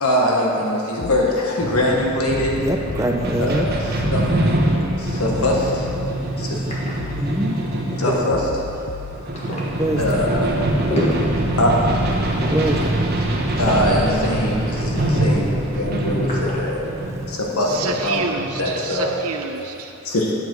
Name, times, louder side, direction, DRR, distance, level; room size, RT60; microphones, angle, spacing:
voice 1, 0.0-2.5 3.4-3.7 4.1-4.2 5.0-5.9 6.4-6.6 8.0-8.5 10.0-10.5 11.6-11.7 13.6-16.9 17.3-18.3 18.6-19.1 20.0-20.3, left 1 dB, 85° left, -2 dB, 1.3 m, -22 dB
sound 1, 1.0-1.3 2.3-3.2 4.0-4.3 5.3-6.2 7.0-7.3 8.3-9.2 10.0-10.3 11.3-12.2, left 6 dB, 55° left, 0.3 m, -33 dB
sound 2, 1.6-19.1, right 1 dB, 45° right, 1.1 m, -24 dB
voice 2, 2.6-3.7 6.0-6.1 6.7-6.8 7.2-7.8 9.8-10.2 12.5-13.0 13.6-13.7 17.1-17.4, right 1 dB, 15° right, 2 dB, 0.6 m, -25 dB
sound 3, 5.3-18.2, equal, 30° left, 1.4 m, -33 dB
voice 3, 17.6-20.0, right 4 dB, 80° right, 4 dB, 0.6 m, -29 dB
10.5 x 7.3 x 4.6 m, 2.7 s
head